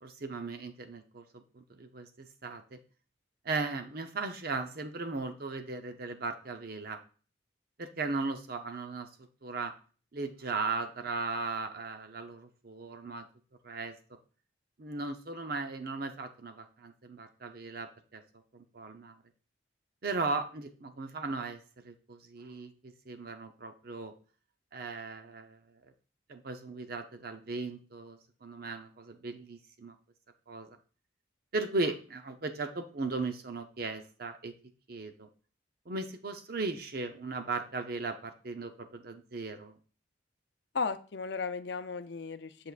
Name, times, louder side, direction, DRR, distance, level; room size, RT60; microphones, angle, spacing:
voice 1, 0.0-2.8 3.4-7.0 7.8-9.1 9.4-9.7 10.1-13.3 13.6-14.2 14.8-18.2 18.5-19.2 20.0-24.1 24.7-25.8 26.3-30.0 30.5-30.8 31.5-34.5 34.9-35.3 35.9-39.8, right 3 dB, 50° right, 7 dB, 0.7 m, -37 dB
voice 2, 40.7-42.7, left 4 dB, 65° left, 11 dB, 0.5 m, -35 dB
8.1 x 6.7 x 2.4 m, 0.38 s
head